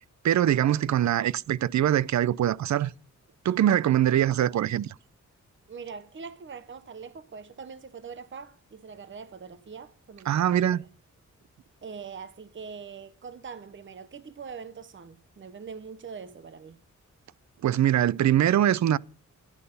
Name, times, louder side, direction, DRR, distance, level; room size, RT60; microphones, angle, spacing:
voice 1, 0.2-2.9 3.4-4.9 10.3-10.8 17.6-19.0, right 11 dB, 70° right, 0.5 m, -23 dB
voice 2, 5.7-10.9 11.8-16.8, right 6 dB, 40° right, 0.9 m, -43 dB
11.0 x 11.0 x 5.3 m
wide cardioid pair, 105°, 30 cm